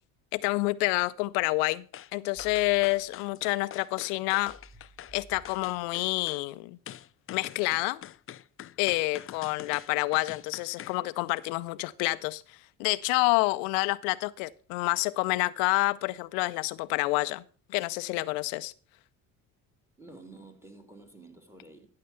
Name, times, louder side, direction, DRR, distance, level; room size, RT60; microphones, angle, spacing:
voice 1, 0.3-1.8 2.1-4.5 5.1-6.8 7.3-8.0 8.8-17.4 17.7-18.7, left 22 dB, 85° left, 0.6 m, -28 dB
sound 1, 1.9-2.1 2.4-5.1 5.4-6.4 6.9-11.0 11.4-11.5, left 11 dB, 30° left, 0.4 m, -45 dB
sound 2, 2.3-6.0, right 1 dB, 20° right, 6.3 m, -56 dB
voice 2, 20.0-21.9, right 2 dB, 5° right, 2.5 m, -50 dB
13.5 x 6.7 x 5.5 m
supercardioid pair, 80°, 44 cm